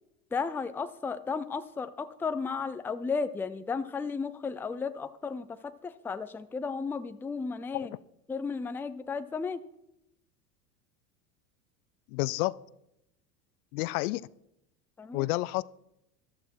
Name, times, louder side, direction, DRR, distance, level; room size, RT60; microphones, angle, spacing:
voice 1, 0.3-7.9 8.3-9.6 15.0-15.3, left 5 dB, 5° left, 12 dB, 0.4 m, -34 dB
voice 2, 12.1-12.5 13.7-14.2 15.1-15.6, left 20 dB, 60° left, 20 dB, 0.6 m, -29 dB
13.5 x 12.5 x 4.6 m, 0.82 s
hypercardioid pair, 90°, 50 cm